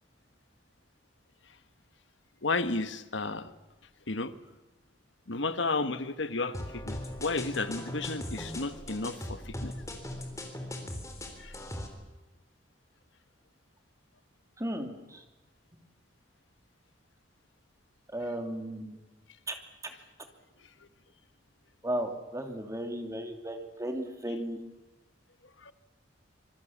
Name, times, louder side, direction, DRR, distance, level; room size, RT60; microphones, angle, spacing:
voice 1, 2.4-3.5 4.1-4.3 5.3-9.7 11.4-11.5 25.6-25.7, left 3 dB, 80° left, 11 dB, 1.4 m, -32 dB
sound 1, 6.5-11.9, left 1 dB, 15° left, 3.9 m, -39 dB
voice 2, 14.6-15.2 18.1-19.0 19.5-19.6 21.8-24.6, right 1 dB, 15° right, 5 dB, 2.7 m, -35 dB
26.0 x 23.5 x 7.3 m, 1.1 s
head